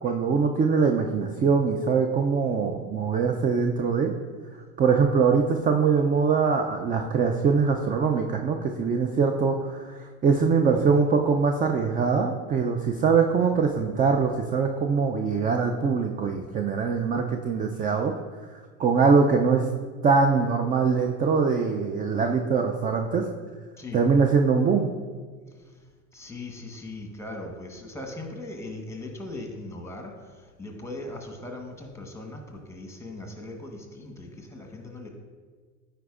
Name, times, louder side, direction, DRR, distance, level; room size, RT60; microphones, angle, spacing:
voice 1, 0.0-4.1 4.8-18.1 18.8-19.7 20.0-23.2 23.9-24.9, right 5 dB, 20° right, 4 dB, 0.3 m, -23 dB
voice 2, 26.1-30.1 30.6-35.1, left 2 dB, 5° left, 2 dB, 1.1 m, -39 dB
9.0 x 4.4 x 2.4 m, 1.5 s
hypercardioid pair, 75°, 41 cm